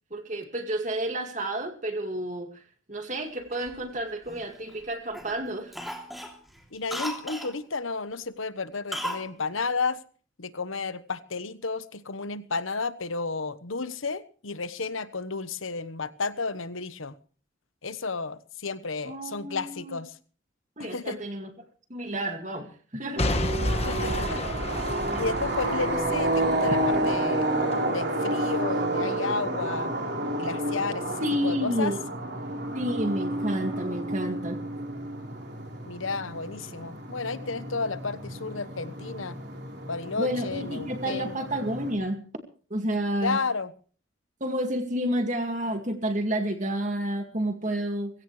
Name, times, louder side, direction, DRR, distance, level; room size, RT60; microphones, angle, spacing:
voice 1, 0.1-2.6 2.9-5.8 19.1-20.0 20.8-21.5 21.9-23.3 31.2-32.0 32.7-34.6 40.2-42.2 42.7-43.4 44.4-48.1, right 1 dB, 35° right, 5 dB, 2.2 m, -30 dB
Cough, 3.5-4.8 5.1-5.4 5.7-7.5 8.9-9.3 9.5-9.6, equal, ahead, 3.0 m, -36 dB
voice 2, 6.7-10.0 10.4-17.1 17.8-20.2 20.8-21.2 23.8-24.4 25.2-27.5 27.9-29.9 30.4-31.9 35.8-39.4 39.9-41.3 43.2-43.7, left 4 dB, 85° left, 13 dB, 1.2 m, -32 dB
Boom / Shatter / Crushing, 23.2-27.2 27.7-27.8, left 1 dB, 30° left, 1.4 m, -31 dB
sound 1, 23.2-41.9, right 1 dB, 55° right, 4.3 m, -30 dB
22.0 x 17.0 x 3.3 m, 0.42 s
head